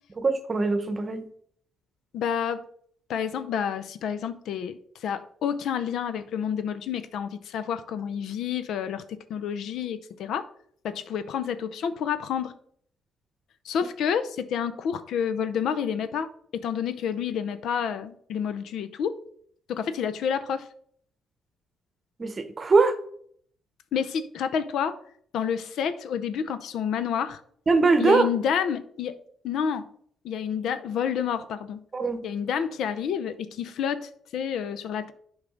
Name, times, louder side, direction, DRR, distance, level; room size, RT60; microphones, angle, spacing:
voice 1, 0.2-1.3 22.2-23.0 27.7-28.3 31.9-32.2, right 3 dB, 35° right, 10 dB, 1.0 m, -22 dB
voice 2, 2.1-2.6 3.1-10.5 10.8-12.5 13.6-19.2 19.7-20.7 23.9-25.0 25.3-27.4 28.0-29.2 29.4-29.8 30.2-31.8 32.2-35.1, left 8 dB, 75° left, 12 dB, 0.6 m, -29 dB
8.3 x 4.8 x 3.8 m, 0.62 s
cardioid pair, 90°, 0 cm